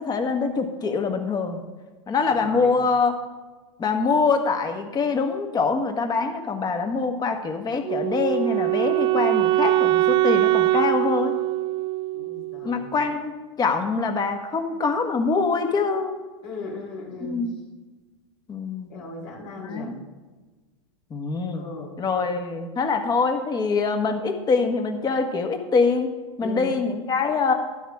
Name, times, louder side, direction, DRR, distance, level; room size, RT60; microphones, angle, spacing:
voice 1, 0.0-1.6 2.1-3.1 3.8-11.3 12.6-13.3 13.6-16.1 17.2-17.6 18.5-18.9 19.6-20.0 21.1-21.6 22.0-26.1 26.4-27.5, left 4 dB, 25° left, 5 dB, 1.5 m, -24 dB
voice 2, 2.4-2.7 12.1-13.1 16.4-17.4 18.9-20.0 21.6-22.0 26.4-26.7, left 3 dB, 65° left, -2 dB, 4.1 m, -37 dB
Wind instrument woodwind instrument, 7.9-12.9, right 16 dB, 30° right, 0.4 m, -22 dB
12.5 x 10.5 x 3.6 m, 1.3 s
hypercardioid pair, 100°, 16 cm